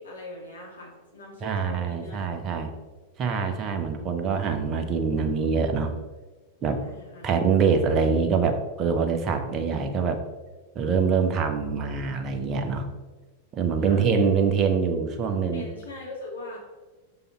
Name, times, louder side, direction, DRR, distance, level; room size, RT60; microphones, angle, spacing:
voice 1, 0.0-2.4 6.8-7.3 13.8-14.0 15.5-16.6, left 2 dB, 70° left, -3 dB, 2.5 m, -41 dB
voice 2, 1.4-2.7 3.2-5.9 6.6-6.8 7.2-10.2 10.7-12.9 13.5-15.6, right 5 dB, 30° right, 6 dB, 0.9 m, -24 dB
6.9 x 5.5 x 4.3 m, 1.2 s
figure-of-eight pair, 90°, 0 cm